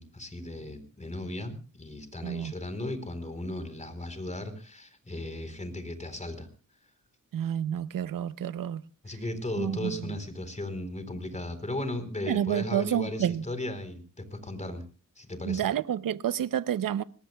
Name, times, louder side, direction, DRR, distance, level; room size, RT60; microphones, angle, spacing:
voice 1, 0.0-6.5 9.0-14.8 15.2-15.7, left 1 dB, 20° left, 4.1 m, -36 dB
voice 2, 7.3-8.8 9.6-9.9 12.3-13.4 15.4-17.0, right 10 dB, 85° right, 0.8 m, -29 dB
26.0 x 19.5 x 2.3 m
cardioid pair, 80°, 32 cm